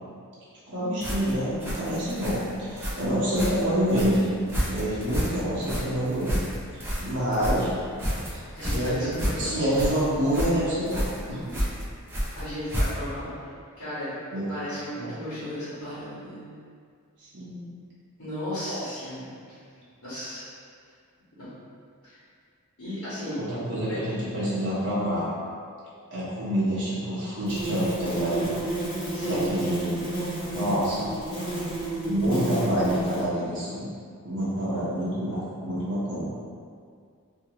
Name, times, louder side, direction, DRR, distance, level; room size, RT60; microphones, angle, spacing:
voice 1, 0.7-4.3 4.6-6.5 6.7-7.7 8.3-11.0 11.3-11.6 14.3-14.4 14.9-15.1 17.2-17.7 18.6-18.8 23.5-25.3 26.1-28.5 29.2-29.9 30.5-31.1 32.0-33.9 34.2-36.2, equal, 55° right, -10 dB, 1.0 m, -27 dB
sound 1, 1.0-13.2, equal, 10° right, 0.5 m, -31 dB
voice 2, 8.6-9.6 12.3-13.3 13.8-14.1 14.5-16.5 18.2-19.6 20.0-20.4 21.4-21.5 22.0-22.2 22.8-23.4 23.8-24.0 29.1-29.5, left 1 dB, 85° left, -13 dB, 1.2 m, -35 dB
sound 2, 27.4-33.3, right 1 dB, 25° left, 1.0 m, -31 dB
2.7 x 2.6 x 2.9 m, 2.2 s
head